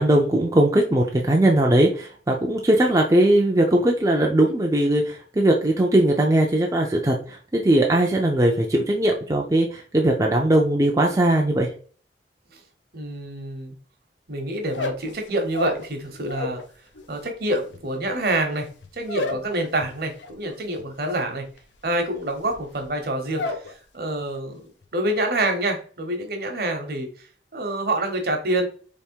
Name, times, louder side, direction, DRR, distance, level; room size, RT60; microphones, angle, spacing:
voice 1, 0.0-11.7, right 1 dB, 20° right, 0 dB, 0.5 m, -19 dB
voice 2, 12.9-13.7 14.3-16.6 17.1-21.4 21.8-23.6 23.9-27.1 27.5-28.7, right 1 dB, 55° right, 4 dB, 1.0 m, -27 dB
sound 1, 14.6-16.7 16.9-23.7 24.0-24.5 24.8-25.3, left 3 dB, 90° left, 0.7 m, -33 dB
3.5 x 3.1 x 4.5 m, 0.43 s
head